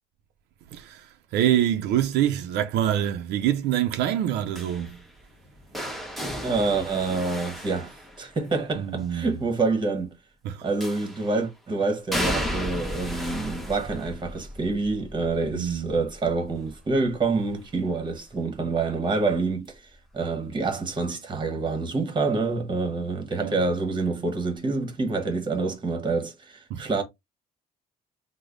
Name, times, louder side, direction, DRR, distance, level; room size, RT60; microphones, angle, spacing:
voice 1, 0.7-5.0 8.7-9.4 10.4-10.7 15.5-15.9 23.4-23.6 26.7-26.9, right 11 dB, 80° right, 0.4 m, -26 dB
sound 1, 4.5-8.6 10.8-11.4 12.1-17.9 18.3-18.7 19.9-20.0, equal, ahead, 0.9 m, -34 dB
voice 2, 6.4-10.1 10.6-19.8 20.1-27.0, right 3 dB, 25° right, 1.1 m, -27 dB
3.1 x 2.0 x 3.7 m
cardioid pair, 110°, 17 cm